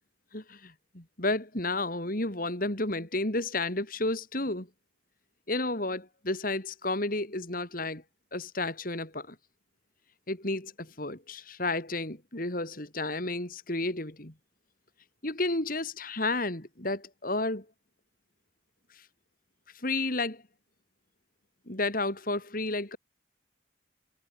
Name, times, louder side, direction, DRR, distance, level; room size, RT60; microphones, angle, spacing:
voice 1, 0.3-4.7 5.5-8.0 8.3-9.4 10.3-14.3 15.2-17.6 18.9-19.1 19.7-20.4 21.7-23.0, left 2 dB, 50° left, 3.8 m, -32 dB
head